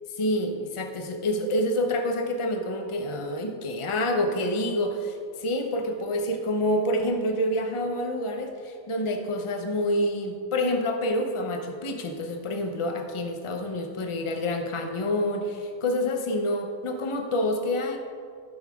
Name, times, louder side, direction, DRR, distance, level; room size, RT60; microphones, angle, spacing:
voice 1, 0.2-18.0, left 1 dB, 30° left, 4 dB, 0.6 m, -27 dB
16.0 x 5.9 x 3.6 m, 2.2 s
omnidirectional pair, 1.7 m